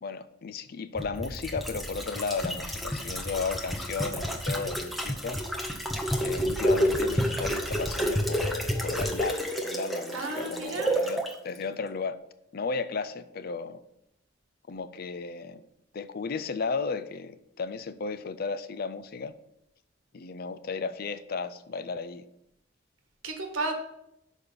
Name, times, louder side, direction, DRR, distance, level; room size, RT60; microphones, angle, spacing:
voice 1, 0.0-5.4 6.2-12.2 12.5-13.8 14.7-15.6 15.9-19.3 20.1-22.2, left 4 dB, 50° left, 12 dB, 0.4 m, -34 dB
sound 1, 1.0-11.3 11.6-11.7, equal, ahead, 0.7 m, -30 dB
voice 2, 10.1-11.1 23.2-23.7, right 2 dB, 90° right, 4 dB, 1.5 m, -33 dB
6.4 x 5.1 x 5.5 m, 0.80 s
head